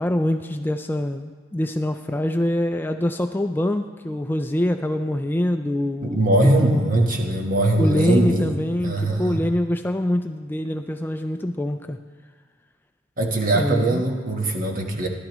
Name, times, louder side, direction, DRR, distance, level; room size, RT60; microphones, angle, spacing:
voice 1, 0.0-6.8 7.8-12.0 13.5-14.0, left 1 dB, 10° left, 6 dB, 0.3 m, -24 dB
voice 2, 6.0-8.6 8.8-9.4 13.2-15.1, right 1 dB, 45° right, 1 dB, 1.3 m, -21 dB
15.0 x 12.0 x 3.0 m, 1.5 s
head